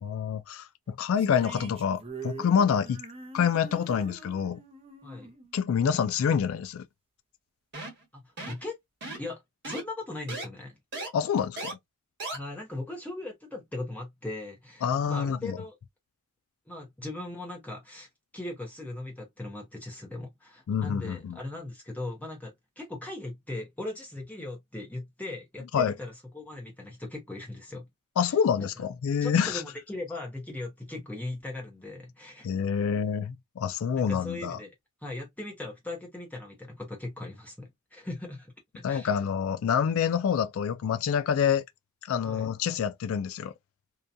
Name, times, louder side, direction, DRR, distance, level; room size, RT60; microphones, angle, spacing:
voice 1, 0.0-3.0 3.3-4.6 5.5-6.9 11.1-11.8 14.8-15.6 20.7-21.4 25.7-25.9 28.2-29.6 32.4-34.6 38.8-41.6 42.1-43.5, left 7 dB, 65° left, 0.3 m, -27 dB
sound 1, 1.1-6.5, right 3 dB, 25° right, 0.5 m, -45 dB
sound 2, 7.7-8.0 8.4-8.7 9.0-9.3 9.6-9.8 10.3-10.5 10.9-11.1 11.6-11.7 12.2-12.4, right 2 dB, 50° right, 1.2 m, -36 dB
voice 2, 8.1-8.8 9.2-10.8 12.3-15.8 16.7-18.1 18.3-27.9 28.2-28.3 28.6-28.7 29.2-32.5 34.0-34.7 35.0-39.1 42.2-42.5, left 2 dB, 5° left, 0.8 m, -39 dB
2.7 x 2.2 x 2.5 m
head